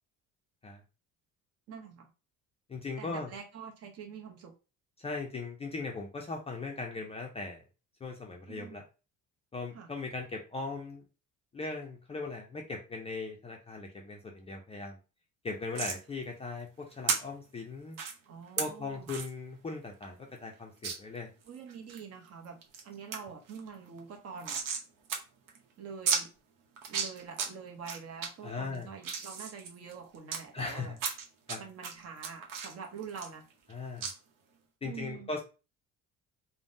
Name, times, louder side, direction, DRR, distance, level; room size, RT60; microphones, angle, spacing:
voice 1, 1.7-2.1 3.0-4.5 8.5-8.8 9.7-9.9 18.3-19.1 21.5-24.6 25.8-26.3 26.9-31.0 31.6-33.4 34.8-35.3, right 6 dB, 50° right, 3 dB, 0.7 m, -45 dB
voice 2, 2.7-3.3 5.0-7.6 8.0-8.8 9.5-11.0 11.5-15.0 15.4-18.0 18.6-21.3 28.4-28.9 30.5-31.0 31.5-31.6 33.7-34.1 34.8-35.4, left 3 dB, 20° left, 1 dB, 0.4 m, -39 dB
sound 1, 15.7-16.0 17.1-17.2 17.9-18.1 18.6-18.7 19.1-19.3 19.7-19.8 20.0-20.1 20.8-21.0 21.5-22.0 22.4-22.8 23.1-23.2 23.5-24.8 25.1-25.2 25.5-25.6 26.1-26.2 26.8-27.5 27.8-28.3 28.7-30.4 31.0-31.6 31.8-33.7 34.0-34.1, right 6 dB, 85° right, 0.8 m, -33 dB
3.4 x 2.1 x 2.5 m, 0.31 s
cardioid pair, 145°, 32 cm